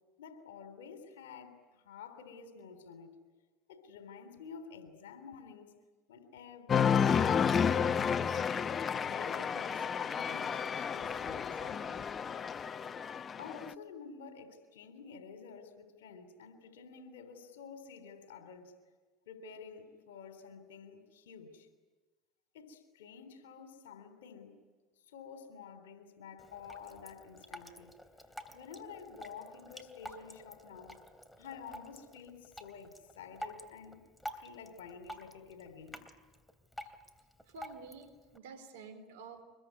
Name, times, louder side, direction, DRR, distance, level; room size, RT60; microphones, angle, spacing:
voice 1, 0.2-3.2 3.7-5.7 6.1-8.5 9.0-12.1 13.4-18.7 19.3-21.7 22.5-24.6 25.1-27.9 28.5-31.0 31.4-34.0 34.3-36.0, left 6 dB, 85° left, 8 dB, 3.4 m, -50 dB
Cheering, 6.7-13.7, left 7 dB, 35° left, 0.7 m, -31 dB
Drip, 26.4-38.4, equal, 5° left, 2.8 m, -50 dB
voice 2, 37.5-39.4, right 4 dB, 80° right, 9 dB, 4.1 m, -50 dB
24.5 x 22.0 x 9.6 m, 1.3 s
hypercardioid pair, 85°, 0 cm